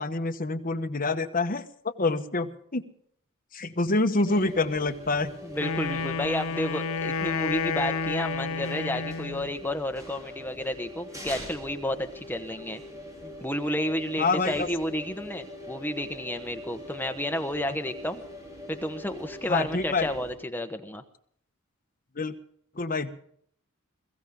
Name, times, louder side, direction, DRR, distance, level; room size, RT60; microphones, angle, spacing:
voice 1, 0.0-1.6 2.0-2.8 3.5-5.3 14.2-14.7 19.5-20.1 22.1-22.4 22.7-23.1, left 3 dB, 40° left, 6 dB, 1.2 m, -26 dB
sound 1, 4.3-20.3, left 1 dB, 15° right, 4.8 m, -43 dB
voice 2, 5.4-12.8 13.2-18.2 18.7-21.0, left 1 dB, 10° left, 7 dB, 1.1 m, -31 dB
Wind instrument woodwind instrument, 5.6-9.6, left 5 dB, 70° left, 0.6 m, -30 dB
22.0 x 15.5 x 3.8 m, 0.62 s
head